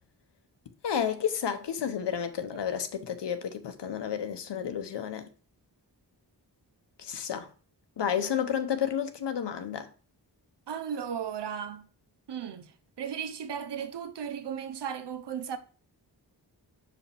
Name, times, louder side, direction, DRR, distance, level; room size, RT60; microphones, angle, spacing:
voice 1, 0.8-5.3 7.0-7.5 8.0-9.9, left 8 dB, 85° left, 0.8 m, -31 dB
voice 2, 10.7-11.9 12.3-15.6, right 8 dB, 80° right, 0.8 m, -36 dB
6.4 x 4.9 x 3.3 m
wide cardioid pair, 100°, 41 cm